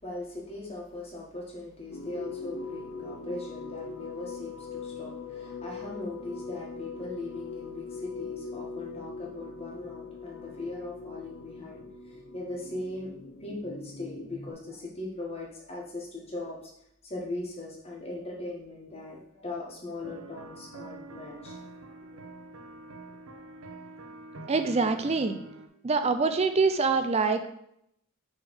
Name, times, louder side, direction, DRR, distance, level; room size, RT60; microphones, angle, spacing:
voice 1, 0.0-13.1 13.4-16.7 17.0-21.6 22.1-22.2, left 2 dB, 25° left, -3 dB, 1.5 m, -39 dB
sound 1, 1.9-14.5, left 4 dB, 60° left, 0.7 m, -41 dB
sound 2, 20.0-25.7, right 2 dB, 70° right, 0.8 m, -46 dB
voice 2, 24.5-25.4 25.8-27.5, right 4 dB, 30° right, 8 dB, 0.4 m, -25 dB
6.2 x 3.5 x 5.3 m, 0.74 s
head